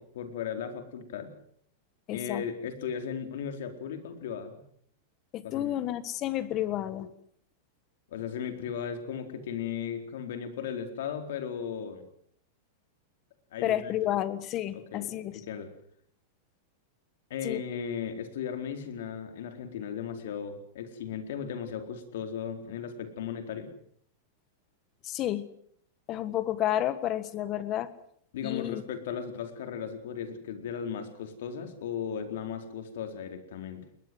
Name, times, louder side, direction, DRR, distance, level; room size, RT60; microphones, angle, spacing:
voice 1, 0.0-1.3 2.1-4.6 5.4-5.8 8.1-12.0 13.5-13.9 14.7-15.7 17.3-23.7 28.3-33.9, left 7 dB, 70° left, 7 dB, 4.2 m, -36 dB
voice 2, 2.1-2.4 5.3-7.1 13.6-15.4 17.4-17.6 25.0-25.5 26.1-27.9 28.4-28.8, left 12 dB, 30° left, 15 dB, 1.5 m, -31 dB
21.0 x 20.5 x 7.9 m, 0.65 s
supercardioid pair, 160°, 0 cm